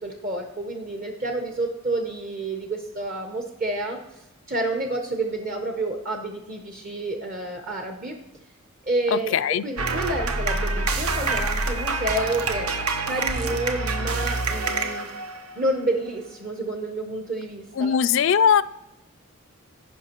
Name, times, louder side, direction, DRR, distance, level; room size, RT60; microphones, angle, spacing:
voice 1, 0.0-8.2 8.8-12.7 13.0-15.1 15.5-18.0, right 2 dB, 40° right, 3 dB, 0.7 m, -29 dB
voice 2, 9.1-9.6 17.8-18.6, left 7 dB, 60° left, 16 dB, 0.3 m, -20 dB
sound 1, 9.8-15.7, right 3 dB, 85° right, 0.9 m, -26 dB
15.0 x 5.7 x 2.9 m, 0.94 s
head